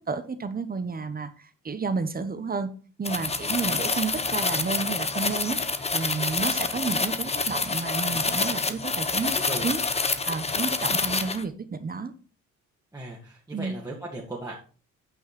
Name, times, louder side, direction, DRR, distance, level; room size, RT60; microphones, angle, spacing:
voice 1, 0.1-2.7 3.0-5.6 5.9-9.4 9.6-9.8 10.3-12.1 13.5-13.8, right 4 dB, 30° right, 1.1 m, -31 dB
sound 1, 3.0-11.4, left 4 dB, 20° left, 0.9 m, -27 dB
voice 2, 9.4-9.7 12.9-14.6, right 2 dB, 10° right, 2.1 m, -37 dB
9.0 x 5.8 x 4.3 m
cardioid pair, 90°, 30 cm